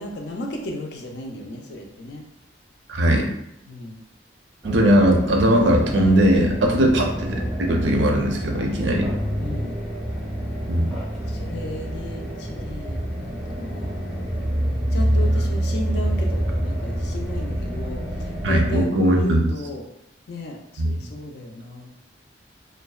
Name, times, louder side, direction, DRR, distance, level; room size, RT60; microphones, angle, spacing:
voice 1, 0.0-2.2 3.7-4.0 6.8-7.0 9.4-9.8 11.1-14.5 14.9-19.9 20.3-22.0, left 1 dB, 65° left, 2 dB, 0.4 m, -35 dB
voice 2, 2.9-3.3 4.6-9.1 10.7-10.9 18.4-19.5 20.8-21.0, right 1 dB, 85° right, 1 dB, 0.5 m, -19 dB
sound 1, 4.6-18.8, equal, ahead, 0.5 m, -27 dB
2.6 x 2.1 x 2.3 m, 0.81 s
head